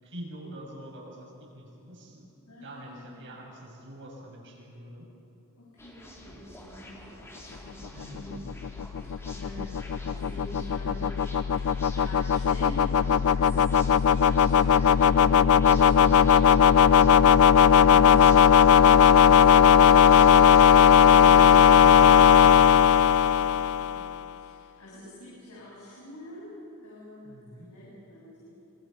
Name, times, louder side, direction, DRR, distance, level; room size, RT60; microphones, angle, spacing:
voice 1, 0.0-2.3 2.6-5.1 7.9-8.4 21.1-23.2 27.2-27.7, equal, 60° right, -1 dB, 7.3 m, -45 dB
voice 2, 2.5-3.4 5.6-7.8 8.1-8.4 9.0-11.2 11.5-17.0 23.3-28.5, left 1 dB, 85° left, -7 dB, 7.7 m, -45 dB
sound 1, 5.8-20.9, equal, 10° left, 3.9 m, -47 dB
sound 2, 8.0-24.2, left 7 dB, 70° left, 0.4 m, -18 dB
27.5 x 26.5 x 5.9 m, 2.9 s
head